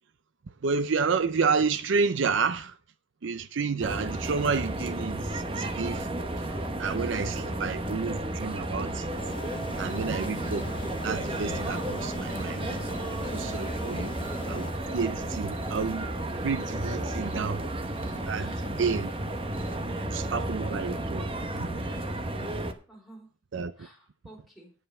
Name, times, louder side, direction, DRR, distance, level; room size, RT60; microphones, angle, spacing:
voice 1, 0.6-2.7 3.2-6.3 6.8-9.1 9.8-10.7 11.0-12.7 13.3-14.2 14.5-16.1 16.4-17.7 18.3-18.5 18.8-19.1 20.1-21.9 22.1-22.5 23.5-23.7, right 5 dB, 65° right, 0.5 m, -30 dB
sound 1, 3.8-22.7, right 1 dB, 25° right, 1.0 m, -33 dB
sound 2, 9.2-14.7, left 2 dB, 25° left, 0.7 m, -41 dB
sound 3, 9.7-20.3, right 2 dB, 80° right, 5.3 m, -51 dB
voice 2, 18.4-18.7 21.7-22.2 22.9-23.3 23.8-24.7, right 1 dB, ahead, 3.5 m, -54 dB
9.2 x 7.7 x 5.4 m
head